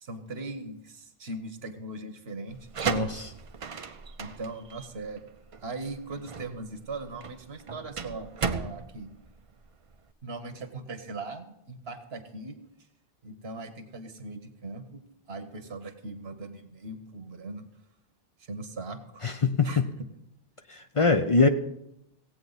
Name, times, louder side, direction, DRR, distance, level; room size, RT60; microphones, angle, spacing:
voice 1, 0.0-2.6 4.2-5.3 5.6-9.1 10.2-12.6 13.2-15.0 15.3-17.7 18.5-19.2 19.6-19.8, right 2 dB, 85° right, 8 dB, 1.4 m, -39 dB
sound 1, 2.5-10.1, right 6 dB, 40° right, 0.6 m, -36 dB
voice 2, 2.9-3.3 19.2-19.9 20.7-21.5, left 4 dB, 40° left, 7 dB, 0.6 m, -23 dB
16.5 x 8.5 x 4.0 m, 0.82 s
omnidirectional pair, 1.0 m